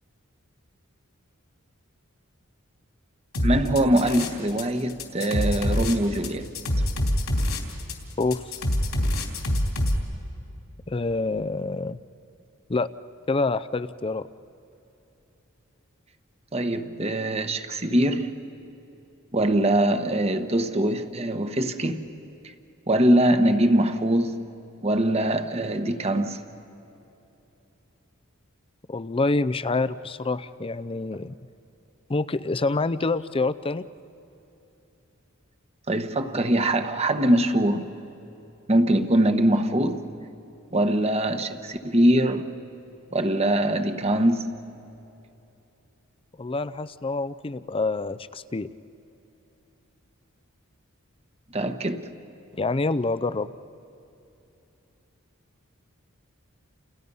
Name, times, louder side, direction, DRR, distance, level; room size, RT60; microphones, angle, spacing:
sound 1, 3.3-4.6 4.9-10.0, left 1 dB, 80° left, 3.5 m, -25 dB
voice 1, 3.4-6.5 16.5-18.3 19.3-22.0 22.9-24.4 24.8-26.4 35.9-37.9 38.7-40.1 40.7-42.5 43.1-44.5 51.5-52.1, right 1 dB, 30° right, 1.2 m, -22 dB
voice 2, 10.9-12.0 12.7-12.9 13.3-14.3 28.9-31.4 32.1-33.8 46.4-48.7 52.5-53.5, left 3 dB, 25° left, 0.5 m, -26 dB
30.0 x 29.0 x 5.5 m
head